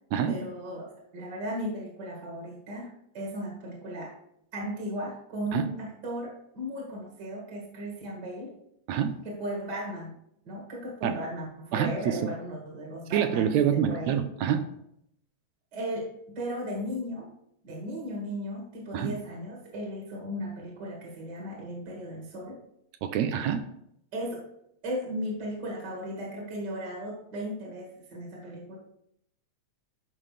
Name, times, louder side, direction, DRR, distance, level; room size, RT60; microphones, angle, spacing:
voice 1, 0.3-4.2 4.5-8.5 9.2-10.1 10.5-14.2 15.7-16.1 16.4-17.3 17.6-22.6 24.1-24.4 24.8-28.8, equal, 40° right, -2 dB, 2.1 m, -36 dB
voice 2, 11.7-12.2 13.1-14.6 18.9-19.2 23.0-23.6, right 9 dB, 80° right, 8 dB, 1.8 m, -26 dB
11.0 x 5.6 x 3.3 m, 0.73 s
omnidirectional pair, 3.4 m